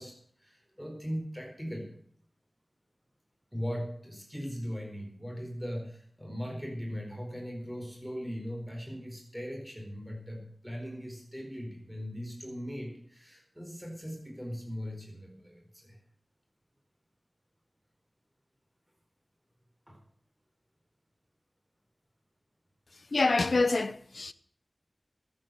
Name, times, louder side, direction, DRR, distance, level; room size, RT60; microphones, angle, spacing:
voice 1, 0.0-1.9 3.5-16.0 19.9-20.0, equal, ahead, 4.5 m, -39 dB
voice 2, 23.1-24.3, left 3 dB, 80° left, 0.7 m, -26 dB
14.0 x 8.6 x 7.8 m
wide cardioid pair, 50°, 0 cm